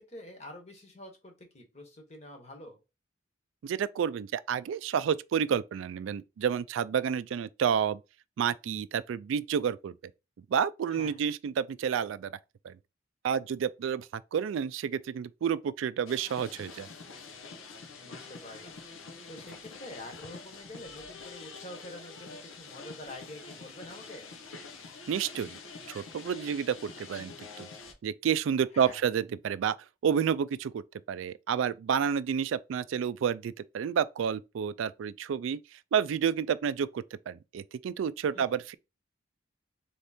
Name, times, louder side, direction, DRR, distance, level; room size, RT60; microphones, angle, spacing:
voice 1, 0.0-2.8 10.9-11.2 18.0-18.7 19.3-24.4 28.7-29.0 38.3-38.5, left 1 dB, 35° left, 1.2 m, -47 dB
voice 2, 3.6-8.0 8.4-9.9 10.5-12.3 12.6-12.7 13.2-16.9 25.1-25.6 25.9-27.7 28.0-29.8 30.0-30.8 31.1-35.6 35.9-38.7, right 7 dB, 75° right, 0.3 m, -30 dB
sound 1, 16.1-27.9, left 4 dB, 90° left, 0.9 m, -46 dB
3.6 x 3.5 x 4.2 m
head